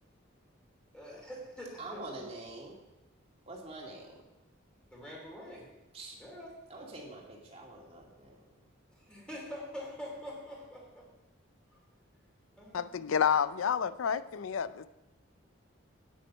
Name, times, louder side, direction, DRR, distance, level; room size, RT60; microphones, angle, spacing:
voice 1, 0.9-2.3 4.9-5.7 6.1-6.5 8.9-11.1 11.7-11.8 12.5-13.2, equal, 5° left, -3 dB, 3.4 m, -45 dB
voice 2, 1.8-2.8 3.5-4.1 5.9-6.2 6.7-8.4, right 2 dB, 30° right, -2 dB, 2.3 m, -45 dB
voice 3, 12.7-14.9, left 7 dB, 90° left, 15 dB, 0.4 m, -29 dB
9.4 x 8.8 x 5.5 m, 1.0 s
head